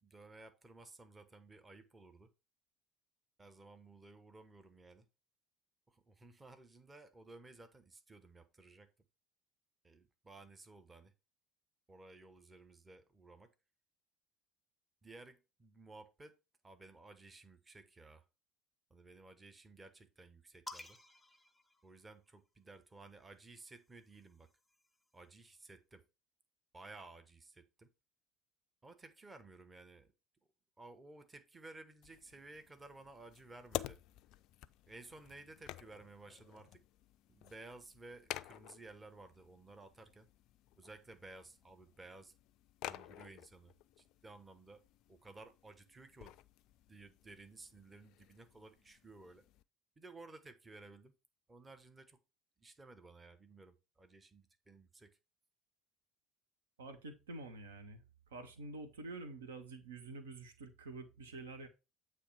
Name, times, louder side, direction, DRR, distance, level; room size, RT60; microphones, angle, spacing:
voice 1, 0.0-2.3 3.4-5.1 5.9-8.9 9.8-11.1 11.9-13.5 15.0-16.4 16.6-18.2 18.9-21.0 21.8-24.5 25.1-26.1 26.7-27.9 28.8-30.1 30.8-34.0 34.9-36.8 37.3-40.3 40.7-42.3 42.8-44.8 45.1-46.4 46.9-49.4 50.0-51.1 51.5-52.2 52.6-55.2, right 3 dB, 20° right, 0.9 m, -56 dB
sound 1, 20.7-22.5 23.6-25.2, left 2 dB, 10° left, 0.7 m, -55 dB
sound 2, 32.0-49.6, left 14 dB, 50° left, 0.3 m, -51 dB
voice 2, 56.8-58.0 58.3-61.7, right 3 dB, 70° right, 0.8 m, -48 dB
8.3 x 3.1 x 4.8 m
figure-of-eight pair, 65°, 0 cm